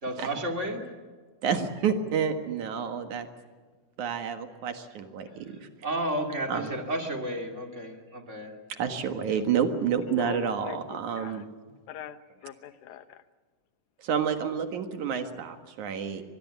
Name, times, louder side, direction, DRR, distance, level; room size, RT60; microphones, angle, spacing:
voice 1, 0.0-0.9 5.8-8.6 9.3-9.4, right 1 dB, 25° right, 3 dB, 2.6 m, -32 dB
voice 2, 1.4-3.3 4.0-5.7 6.5-6.7 8.8-11.5 14.0-16.2, right 7 dB, 75° right, 7 dB, 3.0 m, -29 dB
voice 3, 10.1-11.4 11.9-12.2 12.4-13.2, left 10 dB, 80° left, 12 dB, 2.4 m, -41 dB
25.0 x 20.5 x 8.3 m, 1.5 s
omnidirectional pair, 3.5 m